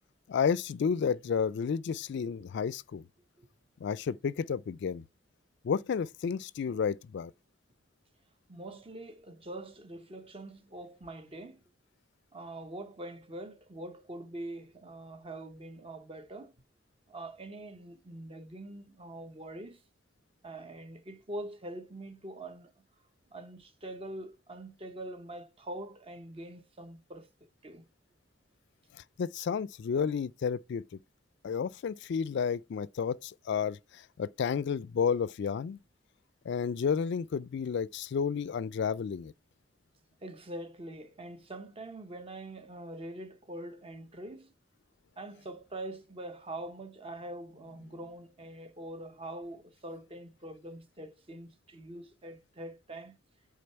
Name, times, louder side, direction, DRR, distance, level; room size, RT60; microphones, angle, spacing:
voice 1, 0.3-3.0 3.8-5.0 5.6-7.3 28.9-30.8 31.4-35.8 36.5-39.3, left 6 dB, 60° left, 0.3 m, -31 dB
voice 2, 8.5-11.6 12.3-16.5 17.1-19.8 20.4-22.7 23.3-27.9 40.2-44.5 45.2-53.2, right 1 dB, 30° right, 0.8 m, -44 dB
8.6 x 3.7 x 4.4 m
head